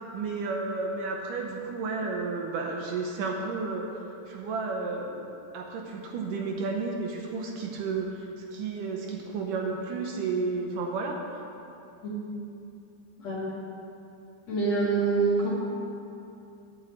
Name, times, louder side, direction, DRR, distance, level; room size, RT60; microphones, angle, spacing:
voice 1, 0.1-5.3 5.5-11.4, right 4 dB, 75° right, 1 dB, 2.2 m, -32 dB
voice 2, 14.5-15.5, right 4 dB, 50° left, -5 dB, 2.8 m, -25 dB
9.8 x 5.7 x 8.2 m, 2.7 s
omnidirectional pair, 4.1 m